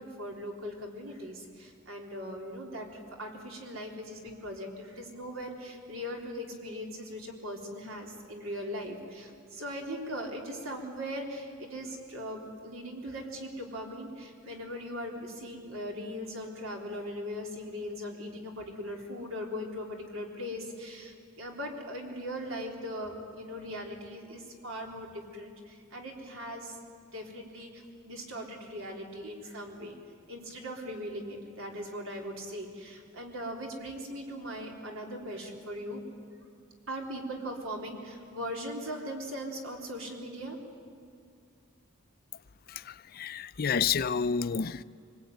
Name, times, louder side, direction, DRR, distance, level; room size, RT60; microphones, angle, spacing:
voice 1, 0.0-26.7 27.1-30.0 30.3-36.0 36.9-40.6, equal, 85° right, 3.8 m, -39 dB
voice 2, 42.7-44.8, left 6 dB, 45° left, 0.5 m, -30 dB
25.5 x 19.5 x 9.4 m
head